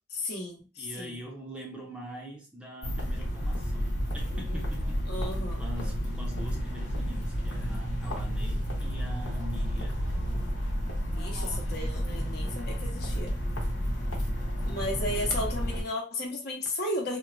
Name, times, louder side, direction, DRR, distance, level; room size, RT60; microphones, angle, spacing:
voice 1, 0.1-1.2 5.1-5.6 11.1-13.3 14.7-17.2, left 1 dB, 60° left, 0 dB, 0.8 m, -34 dB
voice 2, 0.8-5.0 5.6-9.9, equal, 5° right, -2 dB, 0.5 m, -43 dB
sound 1, 2.8-15.8, equal, 90° left, 0.9 m, -31 dB
3.0 x 2.1 x 2.4 m, 0.31 s
head